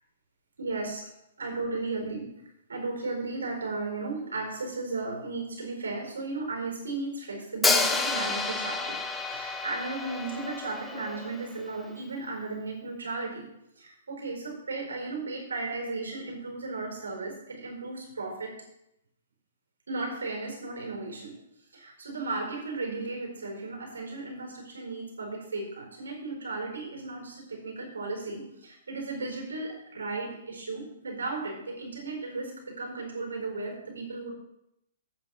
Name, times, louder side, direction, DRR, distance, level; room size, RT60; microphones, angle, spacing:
voice 1, 0.6-1.1 1.4-2.3 2.7-13.5 13.8-18.6 19.9-21.4 21.7-34.3, right 3 dB, 85° right, 1 dB, 4.3 m, -35 dB
Hi-hat, 7.6-11.6, left 4 dB, 10° left, 0.9 m, -29 dB
8.8 x 7.7 x 6.2 m, 0.83 s
hypercardioid pair, 130°, 0 cm